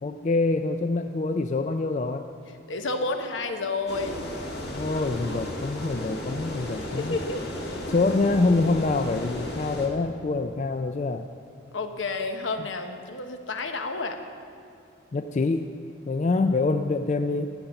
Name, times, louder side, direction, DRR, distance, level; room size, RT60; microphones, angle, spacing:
voice 1, 0.0-2.3 4.7-7.2 7.9-11.3 15.1-15.7 16.1-17.5, left 3 dB, 35° left, 7 dB, 0.3 m, -25 dB
voice 2, 2.7-4.3 6.8-7.4 7.8-7.9 11.7-14.2, left 3 dB, 75° left, 6 dB, 1.0 m, -30 dB
sound 1, 3.9-9.9, left 1 dB, 55° left, 1.9 m, -34 dB
11.5 x 8.7 x 6.9 m, 2.6 s
head